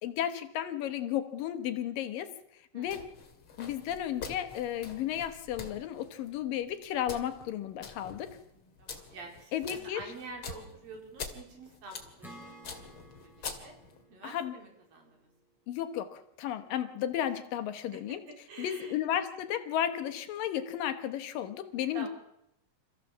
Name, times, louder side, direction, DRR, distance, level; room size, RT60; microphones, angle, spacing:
voice 1, 0.0-2.3 2.7-3.1 3.6-8.4 9.5-10.0 14.2-14.5 15.7-18.2 18.6-22.1, left 10 dB, 75° left, 10 dB, 2.9 m, -33 dB
sound 1, 2.8-14.0, left 5 dB, 40° left, 2.8 m, -46 dB
voice 2, 8.8-12.6 13.0-13.1 13.4-13.8 14.1-15.3 17.9-18.0 18.5-19.0 21.9-22.1, right 3 dB, 80° right, 2 dB, 5.9 m, -47 dB
Acoustic guitar / Strum, 12.2-15.7, right 1 dB, ahead, 5.3 m, -54 dB
27.0 x 15.0 x 7.3 m, 0.80 s
omnidirectional pair, 4.0 m